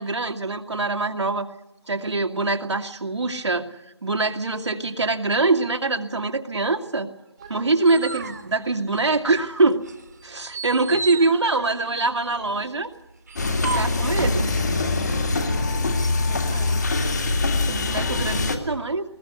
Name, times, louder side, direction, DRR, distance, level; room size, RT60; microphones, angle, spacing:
voice 1, 0.0-1.5 1.9-3.7 4.0-7.1 7.5-9.8 10.2-12.9 13.7-14.5 17.7-19.0, right 3 dB, 80° right, 5 dB, 2.3 m, -23 dB
sound 1, 7.4-9.4 9.8-14.5, right 3 dB, 40° right, 1.5 m, -34 dB
voice 2, 10.8-12.3 14.0-14.5 15.2-15.6 16.2-16.8 17.6-18.3, right 5 dB, 10° right, 0 dB, 1.1 m, -42 dB
sound 2, 13.3-18.6, left 3 dB, 40° left, 2.3 m, -23 dB
20.5 x 20.0 x 8.1 m, 0.94 s
hypercardioid pair, 180°, 14 cm